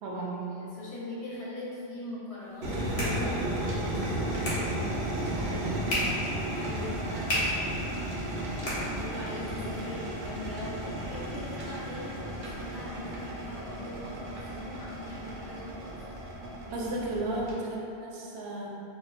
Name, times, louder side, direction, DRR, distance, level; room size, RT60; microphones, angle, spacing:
voice 1, 0.0-0.5 5.3-6.2 16.7-18.7, right 2 dB, 90° right, -2 dB, 0.8 m, -34 dB
voice 2, 0.5-4.0 6.5-8.1 8.6-16.0 16.6-16.9 17.3-17.4, left 1 dB, 40° left, -8 dB, 0.7 m, -41 dB
sound 1, 2.4-9.5, left 1 dB, 65° left, 1.1 m, -36 dB
sound 2, 2.6-17.5, right 1 dB, 60° right, 0.7 m, -34 dB
4.1 x 2.4 x 2.5 m, 2.8 s
omnidirectional pair, 1.1 m